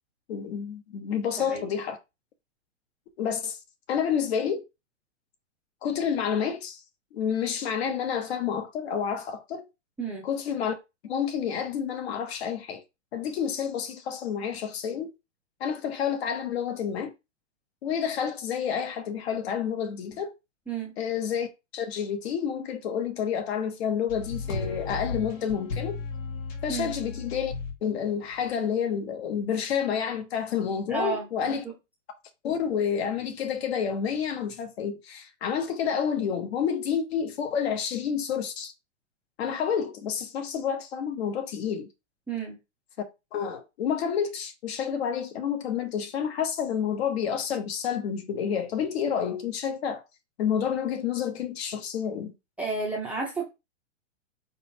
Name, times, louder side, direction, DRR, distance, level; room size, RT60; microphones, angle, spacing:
voice 1, 0.3-2.0 3.2-3.6 3.9-4.6 5.8-6.8 7.1-9.7 10.2-10.7 11.0-12.8 13.1-15.1 15.6-17.1 17.8-20.3 21.0-21.5 21.7-26.0 26.6-27.5 27.8-31.6 32.4-38.7 39.4-41.9 43.3-50.0 50.4-52.3, left 7 dB, 55° left, 1.0 m, -29 dB
sound 1, 24.1-27.8 28.4-28.5, left 4 dB, 85° left, 1.8 m, -34 dB
voice 2, 30.9-31.7 42.3-42.6 52.6-53.5, right 4 dB, 5° right, 0.5 m, -32 dB
4.2 x 3.9 x 2.8 m
hypercardioid pair, 145°, 37 cm